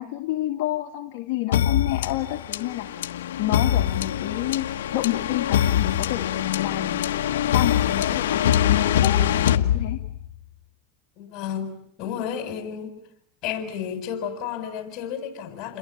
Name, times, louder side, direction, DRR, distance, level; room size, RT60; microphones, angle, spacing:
voice 1, 0.0-2.9 3.4-4.7 4.9-7.1 7.5-10.0, left 14 dB, 65° left, 3 dB, 2.3 m, -29 dB
sound 1, 1.5-10.4, left 11 dB, 85° left, 1.4 m, -23 dB
voice 2, 11.2-11.7 12.0-12.9 13.4-15.8, left 8 dB, 45° left, 6 dB, 7.4 m, -31 dB
30.0 x 22.5 x 8.9 m, 0.72 s
supercardioid pair, 130°, 0 cm